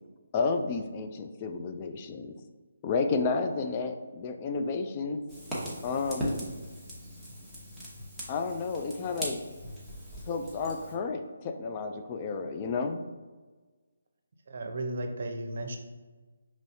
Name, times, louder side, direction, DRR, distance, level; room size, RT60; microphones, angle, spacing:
voice 1, 0.3-2.3 2.8-5.2 5.8-6.5 8.3-9.4 10.3-13.0, left 4 dB, 30° left, 6 dB, 0.3 m, -31 dB
Fire, 5.3-11.0, equal, 5° left, 1.0 m, -39 dB
voice 2, 14.5-15.8, right 1 dB, 55° right, 5 dB, 0.6 m, -34 dB
5.4 x 3.0 x 2.7 m, 1.3 s
figure-of-eight pair, 150°, 0 cm